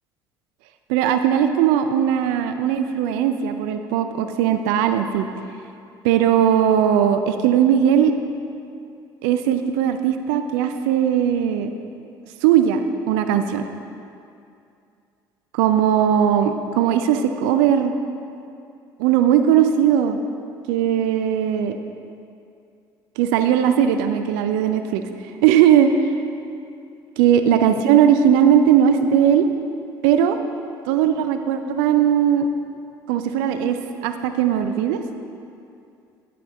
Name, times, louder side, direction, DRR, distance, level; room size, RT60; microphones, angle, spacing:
voice 1, 0.9-5.3 6.0-8.1 9.2-11.7 12.4-12.8 13.1-13.7 15.5-17.9 19.0-20.2 20.7-21.8 23.2-25.0 25.4-25.9 27.2-29.5 30.0-30.4 30.8-32.5 33.1-35.0, right 9 dB, 70° right, 8 dB, 0.5 m, -18 dB
10.0 x 6.7 x 3.8 m, 2.5 s
hypercardioid pair, 60°, 11 cm